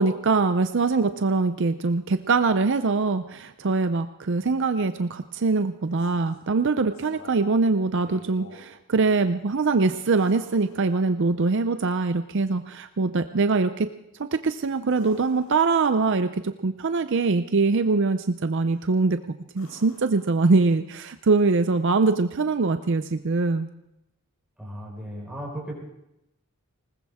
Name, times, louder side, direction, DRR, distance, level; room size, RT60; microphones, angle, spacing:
voice 1, 0.0-13.9 14.3-19.2 19.5-23.7, right 3 dB, 55° right, 10 dB, 0.6 m, -23 dB
sound 1, 5.8-6.5 6.9-7.6 7.9-8.7 10.2-11.4 14.8-16.1 18.6-19.0 19.5-20.9 23.0-23.1, left 1 dB, 75° left, 5.8 m, -51 dB
voice 2, 24.6-25.7, equal, 5° right, -3 dB, 4.9 m, -35 dB
20.5 x 19.5 x 3.6 m, 0.85 s
head